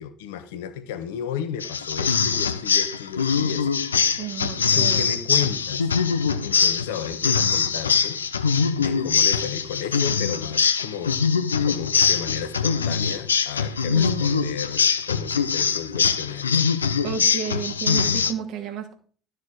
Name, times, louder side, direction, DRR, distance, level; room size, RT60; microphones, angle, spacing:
voice 1, 0.0-3.7 4.6-5.9 6.4-8.2 8.8-11.2 11.6-16.7, left 8 dB, 70° left, 8 dB, 1.3 m, -33 dB
sound 1, 1.6-18.3, left 6 dB, 85° left, 0.7 m, -23 dB
voice 2, 4.2-5.1 13.9-14.5 17.0-19.0, right 7 dB, 55° right, 4 dB, 2.5 m, -32 dB
12.5 x 6.5 x 4.8 m, 0.41 s
figure-of-eight pair, 65°, 0 cm